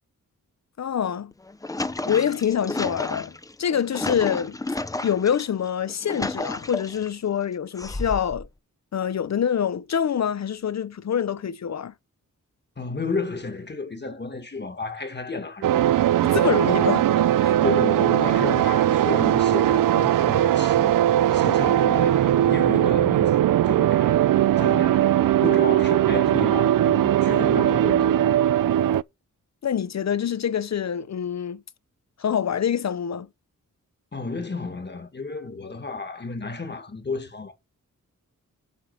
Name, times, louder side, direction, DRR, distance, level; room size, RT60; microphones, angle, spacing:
voice 1, 0.8-1.3 2.1-4.6 5.0-8.5 8.9-11.9 16.2-17.6 29.6-31.6 32.2-33.3, left 8 dB, 55° left, 0.6 m, -26 dB
sound 1, 1.3-5.4 5.9-7.1 7.8-8.5, left 2 dB, 10° left, 0.5 m, -32 dB
voice 2, 12.8-15.8 17.6-20.9 21.3-24.3 24.6-28.2 34.1-37.5, left 3 dB, 35° left, 1.7 m, -32 dB
sound 2, 15.6-29.0, right 12 dB, 80° right, 0.5 m, -20 dB
8.4 x 4.9 x 7.6 m
wide cardioid pair, 140°, 32 cm